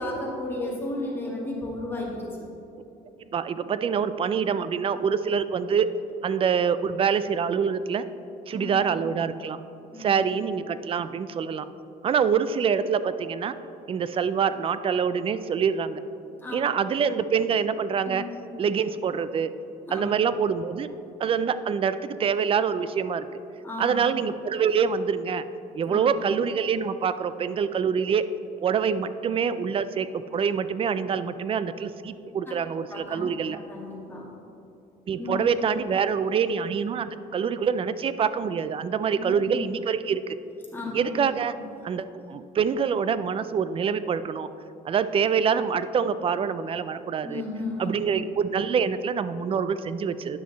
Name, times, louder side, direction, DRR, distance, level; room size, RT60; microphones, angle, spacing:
voice 1, 0.0-2.5 8.5-8.7 9.9-10.1 16.4-16.6 18.1-18.2 19.9-20.1 23.6-24.0 25.8-26.1 32.9-33.2 33.5-34.3 35.2-35.4 39.2-39.3 40.7-40.9 47.2-47.9, left 2 dB, 15° left, -4 dB, 2.0 m, -33 dB
voice 2, 3.3-5.9 6.2-8.0 8.5-9.6 10.0-11.7 12.0-13.5 13.9-16.0 16.5-18.3 18.6-19.5 19.9-20.9 21.2-23.3 23.8-25.4 25.7-28.3 28.6-33.6 35.1-40.2 40.9-41.5 41.8-44.5 44.9-47.4 47.8-50.4, right 6 dB, 35° right, 13 dB, 0.4 m, -25 dB
10.0 x 6.3 x 4.0 m, 2.8 s
cardioid pair, 110°, 17 cm